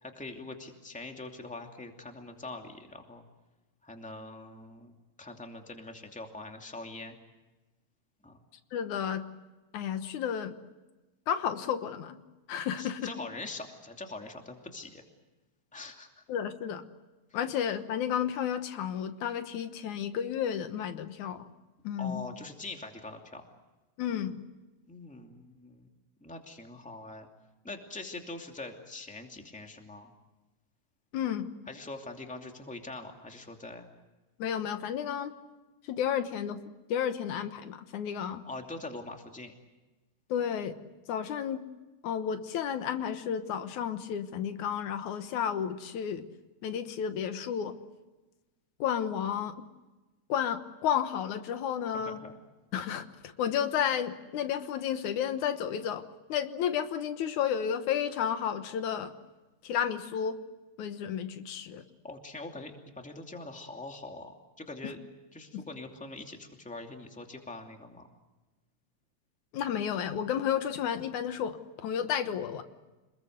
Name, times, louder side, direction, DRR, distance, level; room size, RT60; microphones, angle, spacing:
voice 1, 0.0-3.2 3.8-4.9 5.2-7.1 8.2-8.4 12.8-15.0 15.7-16.1 22.0-23.4 24.9-25.9 26.2-27.3 27.6-30.1 31.7-33.9 38.4-39.5 51.9-52.3 62.0-65.0 65.3-68.1, left 2 dB, 5° left, 3 dB, 2.2 m, -43 dB
voice 2, 8.7-9.3 9.7-10.5 11.3-12.2 12.5-13.1 16.3-16.8 17.3-21.5 21.8-22.3 24.0-24.4 31.1-31.5 34.4-35.3 35.8-36.6 36.9-38.4 40.3-40.8 41.1-41.6 42.0-46.3 46.6-47.8 48.8-49.6 50.3-52.2 52.7-56.0 56.3-59.1 59.6-60.4 60.8-61.8 64.8-64.9 65.5-65.6 69.5-72.6, left 8 dB, 80° left, 9 dB, 2.6 m, -32 dB
28.0 x 21.0 x 8.0 m, 1.1 s
omnidirectional pair, 3.4 m